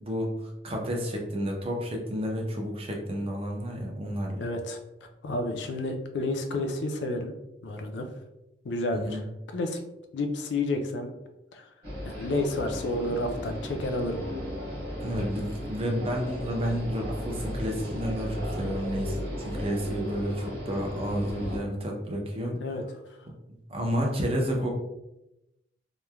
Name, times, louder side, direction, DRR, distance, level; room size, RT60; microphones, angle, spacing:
voice 1, 0.0-4.4 8.9-9.2 15.0-22.6 23.7-24.7, equal, 35° right, 1 dB, 0.5 m, -31 dB
voice 2, 4.4-4.8 5.2-7.3 7.6-8.1 8.6-9.2 9.5-9.8 10.1-11.1 11.5-11.7 12.0-14.3 22.5-22.8, left 2 dB, 90° left, 5 dB, 0.4 m, -30 dB
sound 1, 11.8-21.6, equal, 65° right, 1.3 m, -35 dB
3.0 x 2.1 x 2.2 m, 0.91 s
head